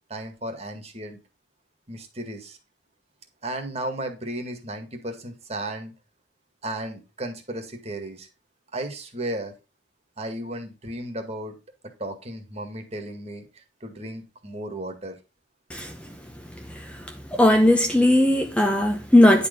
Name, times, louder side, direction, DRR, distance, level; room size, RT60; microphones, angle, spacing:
voice 1, 0.1-1.2 1.9-2.6 3.4-5.9 6.6-8.3 8.7-9.5 10.2-11.6 12.0-15.2, right 1 dB, 35° right, 1.9 m, -34 dB
voice 2, 17.3-19.5, left 1 dB, 5° left, 0.8 m, -17 dB
10.5 x 4.4 x 5.3 m
head